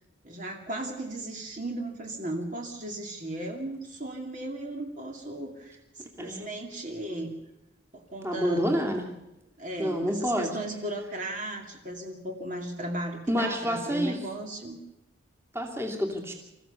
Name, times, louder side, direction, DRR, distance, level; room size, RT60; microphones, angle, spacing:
voice 1, 0.2-7.4 7.9-8.7 9.6-14.8, right 1 dB, 40° right, 2 dB, 2.4 m, -36 dB
voice 2, 8.2-9.0 9.8-10.5 13.3-14.2 15.5-16.3, equal, 10° right, 2 dB, 2.7 m, -28 dB
26.5 x 15.0 x 7.0 m, 0.94 s
head